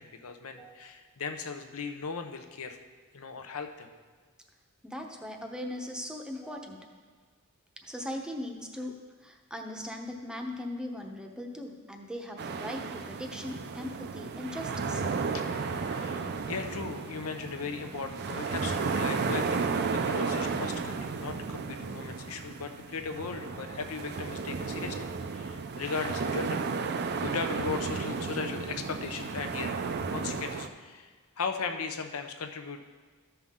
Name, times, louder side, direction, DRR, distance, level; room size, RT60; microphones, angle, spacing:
voice 1, 0.0-2.8 3.1-3.9 15.3-26.6 27.2-29.7 30.1-32.8, left 5 dB, 70° left, 6 dB, 0.7 m, -37 dB
voice 2, 0.5-1.0 4.8-6.9 7.8-8.9 9.2-15.0, left 1 dB, 5° right, 2 dB, 0.8 m, -39 dB
sound 1, 12.4-30.7, right 4 dB, 50° right, 0.5 m, -33 dB
13.5 x 5.8 x 3.6 m, 1.5 s
head